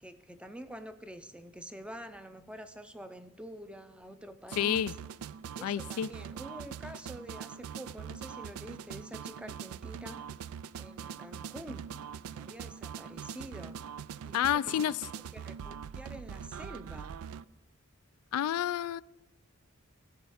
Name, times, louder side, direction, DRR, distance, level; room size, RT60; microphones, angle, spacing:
voice 1, 0.0-4.9 5.6-10.3 10.7-11.9 12.3-13.8 14.2-14.9 15.4-17.2, equal, 5° right, 10 dB, 0.6 m, -47 dB
sound 1, 4.5-17.4, right 7 dB, 75° right, 0.3 m, -43 dB
voice 2, 4.6-4.9 5.6-6.1 14.3-15.0 18.3-19.0, left 10 dB, 85° left, 17 dB, 0.3 m, -29 dB
16.0 x 6.8 x 4.9 m, 0.91 s
head